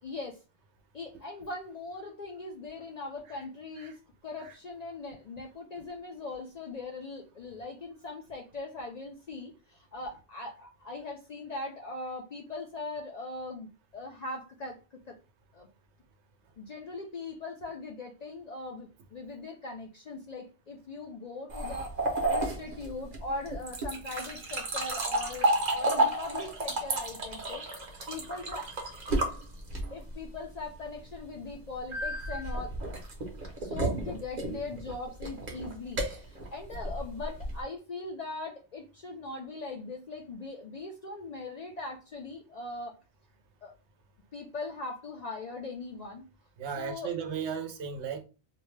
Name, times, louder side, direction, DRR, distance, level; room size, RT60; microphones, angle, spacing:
voice 1, 0.0-0.4 0.9-4.0 4.2-14.8 15.1-15.2 15.5-15.7 16.6-21.9 22.3-27.6 28.1-28.7 28.9-29.0 29.9-32.8 33.6-43.0 43.6-43.7 44.3-46.2 46.8-47.1, left 3 dB, 55° left, 0.4 m, -40 dB
sound 1, 21.5-30.1 31.9-37.6, right 2 dB, 45° right, 0.8 m, -31 dB
voice 2, 46.6-48.2, right 7 dB, 85° right, 0.9 m, -35 dB
2.6 x 2.1 x 3.1 m
omnidirectional pair, 1.1 m